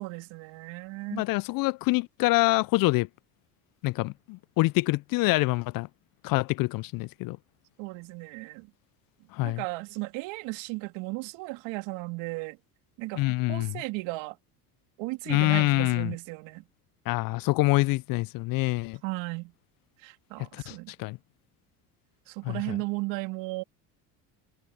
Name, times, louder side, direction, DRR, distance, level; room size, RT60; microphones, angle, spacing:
voice 1, 0.0-1.2 7.8-8.7 9.4-12.6 13.0-14.4 15.0-16.7 19.0-19.5 20.0-20.9 22.3-23.6, right 24 dB, 65° right, 2.8 m, -35 dB
voice 2, 1.1-3.1 3.8-5.9 6.2-7.4 9.3-9.6 13.2-13.7 15.3-16.1 17.1-19.0 20.5-21.2 22.4-22.8, left 22 dB, 45° left, 0.5 m, -26 dB
hypercardioid pair, 75°, 48 cm